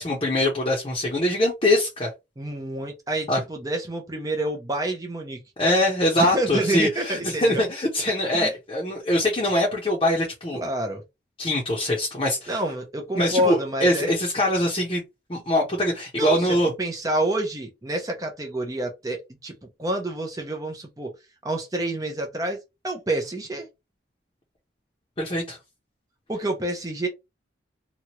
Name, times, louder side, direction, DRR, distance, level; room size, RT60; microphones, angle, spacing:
voice 1, 0.0-2.1 3.3-3.4 5.6-10.6 11.4-12.6 13.1-15.0 15.3-16.7 25.2-25.6, left 1 dB, 30° left, 0.8 m, -23 dB
voice 2, 2.4-5.4 6.2-7.6 8.3-8.5 10.5-11.0 12.5-14.2 16.2-19.5 19.8-21.1 21.4-22.6 22.8-23.7 26.3-27.1, right 1 dB, 20° right, 0.5 m, -28 dB
2.9 x 2.4 x 2.9 m
head